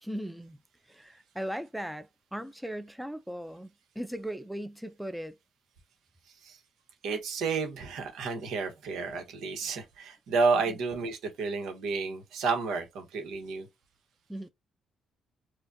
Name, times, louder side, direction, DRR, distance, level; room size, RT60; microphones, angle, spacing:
voice 1, 0.0-0.6 0.9-5.4 10.7-10.8 14.3-14.5, equal, 5° right, 0.4 m, -38 dB
voice 2, 7.0-13.7, right 4 dB, 80° right, 1.1 m, -31 dB
4.8 x 2.3 x 2.6 m
cardioid pair, 90°, 0 cm